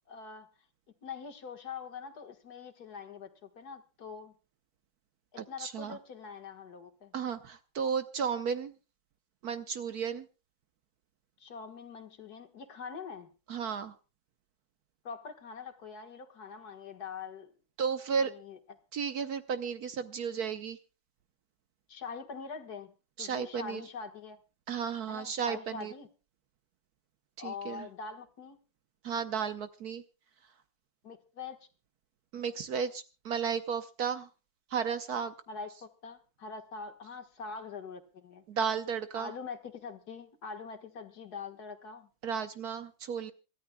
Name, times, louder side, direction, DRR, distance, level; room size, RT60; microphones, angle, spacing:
voice 1, 0.1-0.5 1.0-4.3 5.3-7.1 11.4-13.3 15.0-17.5 18.2-18.6 21.9-24.4 25.1-26.1 27.4-28.6 31.0-31.7 35.5-38.5 39.2-42.1, left 5 dB, 55° left, 5 dB, 1.9 m, -44 dB
voice 2, 5.4-6.0 7.1-8.7 9.4-10.3 13.5-13.9 17.8-18.3 18.9-20.8 23.2-23.8 24.7-25.9 27.4-27.9 29.0-30.0 32.3-34.3 34.7-35.3 38.5-39.3 42.2-43.3, right 6 dB, 60° right, 10 dB, 1.2 m, -33 dB
27.0 x 13.5 x 2.2 m, 0.32 s
omnidirectional pair, 2.1 m